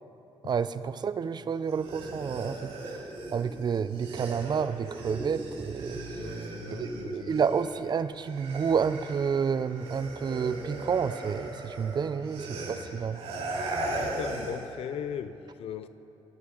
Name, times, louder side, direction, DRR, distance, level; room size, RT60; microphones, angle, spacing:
voice 1, 0.4-2.7 3.3-6.0 6.7-13.2, right 6 dB, 45° right, 13 dB, 0.5 m, -30 dB
sound 1, 1.6-7.9 8.1-14.7, right 2 dB, 90° right, 3.7 m, -38 dB
voice 2, 6.2-7.4 12.6-12.9 13.4-13.5 13.9-15.9, left 9 dB, 75° left, 13 dB, 0.6 m, -39 dB
20.0 x 13.0 x 3.9 m, 3.0 s
cardioid pair, 100°, 10 cm